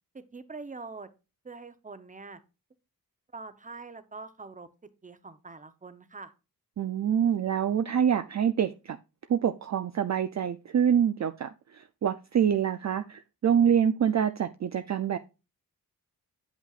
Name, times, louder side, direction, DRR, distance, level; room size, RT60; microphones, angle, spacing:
voice 1, 0.1-1.1 1.4-2.4 3.3-4.7 5.0-6.3, right 4 dB, 20° right, 0.8 m, -44 dB
voice 2, 6.8-9.0 9.3-15.2, right 8 dB, 50° right, 0.5 m, -26 dB
8.2 x 8.0 x 2.4 m
wide cardioid pair, 90°, 37 cm